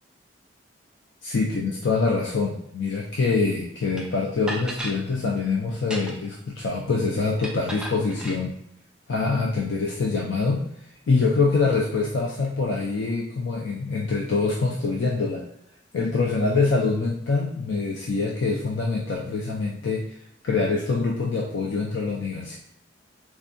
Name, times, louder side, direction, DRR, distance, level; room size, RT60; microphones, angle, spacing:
voice 1, 1.2-8.5 9.1-10.6 11.1-15.4 15.9-20.0 20.4-22.6, left 4 dB, 75° left, -3 dB, 0.4 m, -25 dB
sound 1, 4.0-4.1 4.5-5.0 5.8-6.3 7.4-8.4, right 1 dB, 5° right, 0.3 m, -34 dB
3.4 x 2.2 x 2.5 m, 0.73 s
head